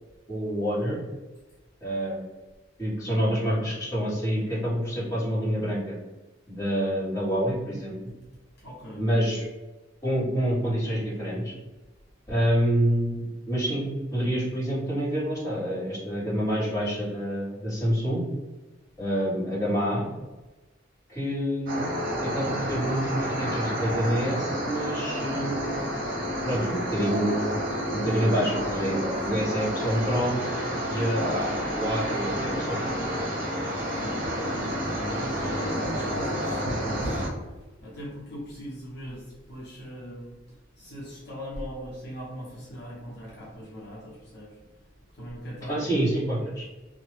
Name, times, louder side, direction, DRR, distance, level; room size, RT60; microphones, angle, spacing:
voice 1, 0.3-1.0 1.8-2.2 2.8-6.0 6.5-8.1 9.0-9.4 10.0-11.5 12.3-18.2 19.0-20.1 21.1-21.8 22.2-25.9 26.4-27.6 27.9-30.4 30.9-32.9 33.1-33.2 45.7-46.6, equal, 20° left, -10 dB, 1.5 m, -27 dB
voice 2, 8.6-9.0 29.2-29.4 33.2-33.3 33.8-34.2 35.1-37.3 37.5-46.0, equal, 60° left, -6 dB, 0.8 m, -41 dB
sound 1, 21.7-37.3, equal, 50° right, 0.8 m, -30 dB
2.8 x 2.1 x 3.2 m, 1.2 s
head